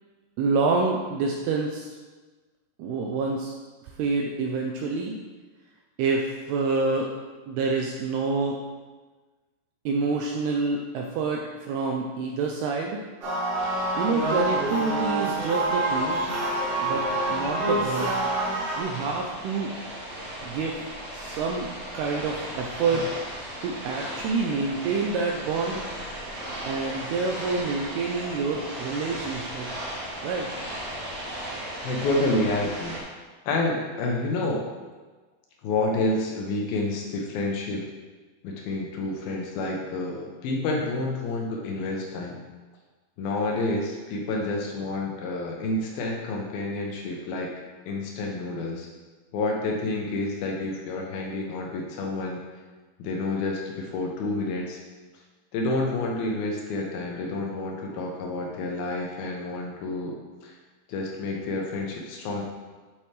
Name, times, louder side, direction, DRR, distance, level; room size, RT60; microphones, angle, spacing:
voice 1, 0.4-1.9 2.8-3.5 4.0-5.2 6.0-7.1 7.5-8.6 9.9-13.0 14.0-16.2 16.8-18.2 18.8-19.7 20.4-20.8 21.1-21.7 21.9-23.0 23.6-25.8 26.7-29.7 30.2-30.5, right 4 dB, 85° right, 1 dB, 2.3 m, -27 dB
sound 1, 13.2-18.8, right 2 dB, 70° right, 4.9 m, -26 dB
sound 2, 13.5-33.0, right 1 dB, 30° right, 1.8 m, -37 dB
voice 2, 31.8-33.0 33.5-34.6 35.6-37.8 38.4-42.4 43.2-47.5 47.9-48.9 49.3-52.4 53.0-54.8 55.5-60.2 60.4-60.6 60.9-62.4, left 2 dB, 75° left, -1 dB, 2.2 m, -29 dB
9.3 x 7.5 x 3.3 m, 1.3 s
omnidirectional pair, 5.3 m